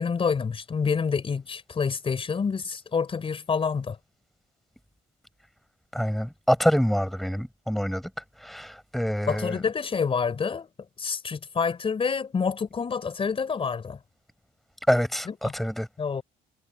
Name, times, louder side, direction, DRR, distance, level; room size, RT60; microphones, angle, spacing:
voice 1, 0.0-4.0 9.3-10.7 11.0-14.0 15.3-15.5 16.0-16.2, left 5 dB, 35° left, 4.4 m, -27 dB
voice 2, 5.9-8.0 8.4-9.6 14.9-15.9, equal, ahead, 6.5 m, -26 dB
cardioid pair, 110°, 17 cm